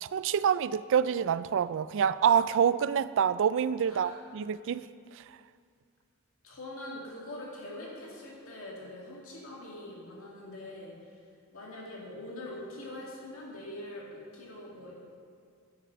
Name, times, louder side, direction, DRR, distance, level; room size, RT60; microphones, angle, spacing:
voice 1, 0.0-4.9 5.2-5.3, right 8 dB, 60° right, 15 dB, 0.3 m, -27 dB
voice 2, 6.4-11.1 11.5-14.9, left 1 dB, 75° left, -4 dB, 2.5 m, -43 dB
10.0 x 6.7 x 7.7 m, 2.3 s
head